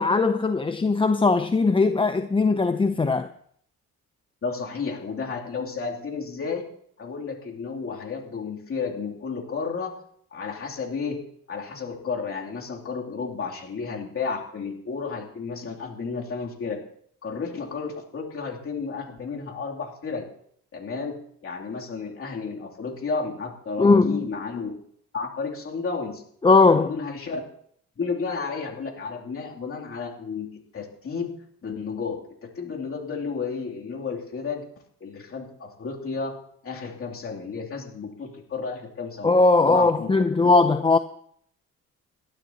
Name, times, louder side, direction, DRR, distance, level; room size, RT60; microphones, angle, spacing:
voice 1, 0.0-3.3 23.8-24.3 26.4-26.9 39.2-41.0, left 3 dB, 15° left, 0.6 m, -19 dB
voice 2, 4.4-6.7 7.0-10.0 10.3-11.2 11.5-16.8 17.2-20.3 20.7-24.7 25.1-26.2 26.7-27.4 28.0-34.6 35.0-36.4 36.6-39.3 39.6-40.1 40.4-40.5, left 5 dB, 45° left, 2.9 m, -32 dB
28.0 x 12.0 x 2.9 m
cardioid pair, 90°, 30 cm